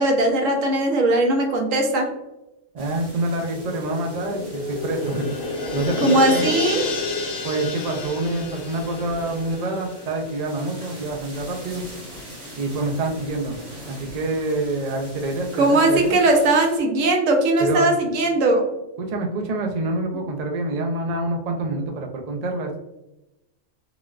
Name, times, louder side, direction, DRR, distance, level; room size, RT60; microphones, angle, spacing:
voice 1, 0.0-2.1 6.0-6.8 15.6-18.6, right 2 dB, 80° right, 1 dB, 1.1 m, -19 dB
voice 2, 2.7-5.4 5.7-6.4 7.4-11.8 12.6-13.6 13.8-16.1 17.6-18.0 19.0-22.8, right 2 dB, 65° right, 2 dB, 0.4 m, -26 dB
sound 1, 2.8-16.8, equal, 45° right, 1.2 m, -42 dB
sound 2, 3.6-10.6 10.9-11.0, left 3 dB, 55° left, 0.7 m, -30 dB
3.9 x 2.2 x 2.3 m, 0.94 s
omnidirectional pair, 1.3 m